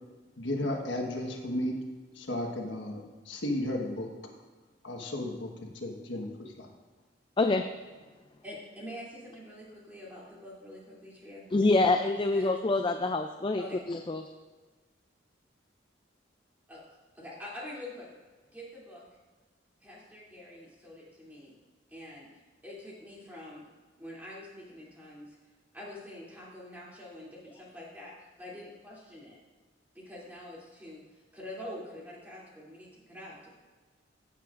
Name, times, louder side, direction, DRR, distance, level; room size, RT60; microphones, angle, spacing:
voice 1, 0.4-1.7 2.1-4.1 4.8-6.7, left 1 dB, 85° left, 1 dB, 1.4 m, -34 dB
voice 2, 8.4-11.8 12.2-12.6 13.6-13.8 16.7-16.8 17.1-18.1 18.5-19.0 19.8-21.5 21.9-22.3 22.6-23.6 24.0-25.3 25.7-28.1 28.4-29.4 29.9-33.5, left 1 dB, 10° right, -6 dB, 3.0 m, -45 dB
voice 3, 11.5-14.2, left 2 dB, 25° left, 6 dB, 0.4 m, -26 dB
15.5 x 7.8 x 2.6 m, 1.4 s
head